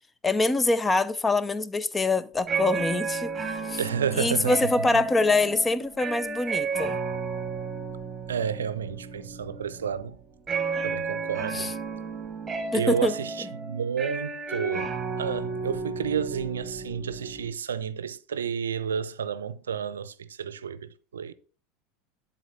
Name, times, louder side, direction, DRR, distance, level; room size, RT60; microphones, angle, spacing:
voice 1, 0.2-3.8 4.2-7.0 11.5-11.7 12.7-13.1, left 3 dB, 15° left, 0.6 m, -25 dB
sound 1, 2.4-17.5, right 4 dB, 20° right, 1.6 m, -33 dB
voice 2, 3.8-4.7 8.3-10.2 10.8-11.7 12.7-14.9 15.2-21.3, right 7 dB, 75° right, 0.5 m, -31 dB
11.0 x 4.3 x 4.0 m
figure-of-eight pair, 80°, 0 cm